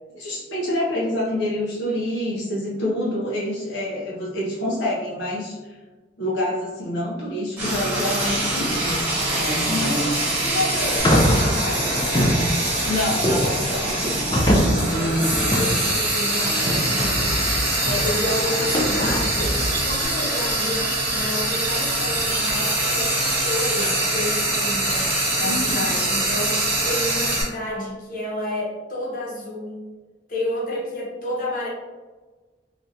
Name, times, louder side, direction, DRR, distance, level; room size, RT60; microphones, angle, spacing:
voice 1, 0.1-5.8 6.2-9.0 9.4-10.3 12.6-14.2 14.6-15.4 25.4-25.9, left 1 dB, 80° left, -5 dB, 0.7 m, -27 dB
Frying (food), 7.6-27.4, right 1 dB, 10° right, 0.9 m, -24 dB
voice 2, 9.7-12.2 14.8-29.9 30.3-31.7, left 1 dB, 45° left, -5 dB, 1.0 m, -30 dB
sound 1, 11.0-20.0, equal, 20° left, 0.4 m, -24 dB
sound 2, 17.8-27.3, right 6 dB, 55° right, 0.5 m, -36 dB
3.2 x 2.5 x 2.7 m, 1.3 s
head